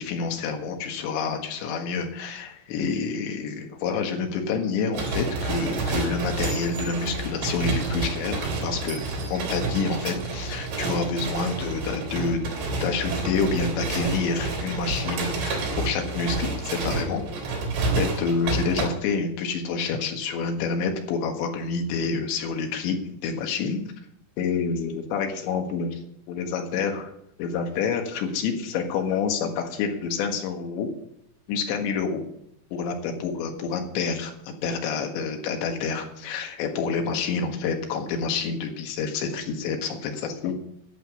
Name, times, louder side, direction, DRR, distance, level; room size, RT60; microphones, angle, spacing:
voice 1, 0.0-12.4 12.8-17.2 18.0-23.0 23.2-23.8 24.4-26.0 26.3-27.1 27.4-30.9 31.5-32.2 32.7-40.5, left 5 dB, 80° left, 4 dB, 3.9 m, -28 dB
sound 1, 4.9-18.9, right 3 dB, 70° right, 5.4 m, -29 dB
11.5 x 7.6 x 8.2 m, 0.74 s
omnidirectional pair, 5.2 m